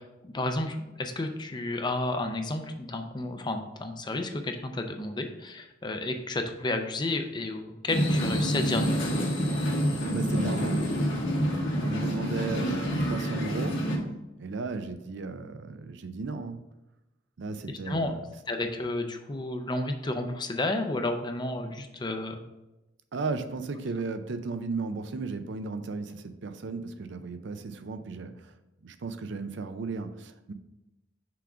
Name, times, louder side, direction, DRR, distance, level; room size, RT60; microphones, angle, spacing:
voice 1, 0.0-8.9 17.9-18.1 18.5-22.4, left 2 dB, 20° left, 6 dB, 0.5 m, -31 dB
sound 1, 7.9-14.0, equal, 75° left, 1.7 m, -27 dB
voice 2, 10.1-10.8 11.8-13.8 14.4-16.6 17.4-18.2 23.1-28.5 28.8-30.5, right 3 dB, 65° right, 9 dB, 0.5 m, -35 dB
5.9 x 3.7 x 4.9 m, 0.97 s
head